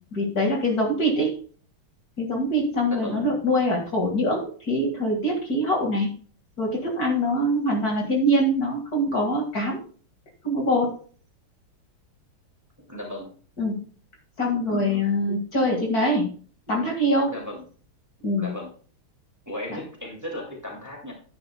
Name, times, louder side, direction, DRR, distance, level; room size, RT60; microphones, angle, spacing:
voice 1, 0.1-1.3 2.2-6.1 6.6-9.8 10.4-10.9 13.6-13.8 14.4-16.3 16.7-17.3 18.2-18.5 19.7-19.8, equal, 45° left, 0 dB, 2.4 m, -23 dB
voice 2, 2.9-3.2 12.9-13.3 14.6-15.4 17.3-17.6 18.4-18.7 19.5-21.1, left 1 dB, 10° right, -1 dB, 2.3 m, -36 dB
11.0 x 9.9 x 2.3 m, 0.42 s
omnidirectional pair, 2.4 m